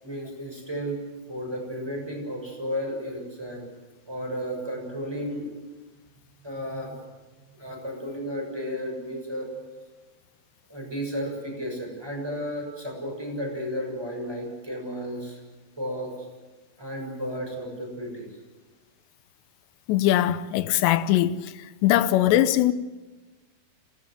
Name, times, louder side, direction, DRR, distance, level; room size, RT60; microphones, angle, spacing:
voice 1, 0.0-1.0 1.3-3.6 4.1-5.4 6.4-7.0 7.6-9.5 10.7-15.4 15.8-16.1 16.8-18.3, equal, 5° right, 6.6 m, -33 dB
voice 2, 19.9-21.5 21.8-22.7, left 13 dB, 85° left, 3.1 m, -21 dB
26.5 x 18.5 x 7.8 m
omnidirectional pair, 4.9 m